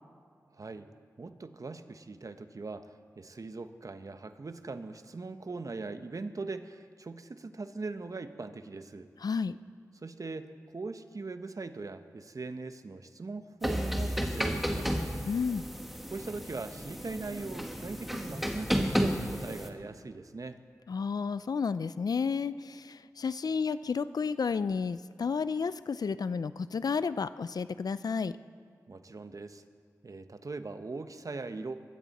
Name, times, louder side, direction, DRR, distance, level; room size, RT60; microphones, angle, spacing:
voice 1, 0.5-0.9 1.2-9.1 10.0-15.1 16.1-20.6 28.9-29.6 30.0-31.8, right 3 dB, 55° right, 10 dB, 0.9 m, -40 dB
voice 2, 9.2-9.6 15.3-15.7 20.9-28.3, left 5 dB, 70° left, 15 dB, 0.4 m, -31 dB
sound 1, 13.6-19.7, equal, 5° right, 1.8 m, -32 dB
21.5 x 15.0 x 4.2 m, 2.1 s
cardioid pair, 40°, 7 cm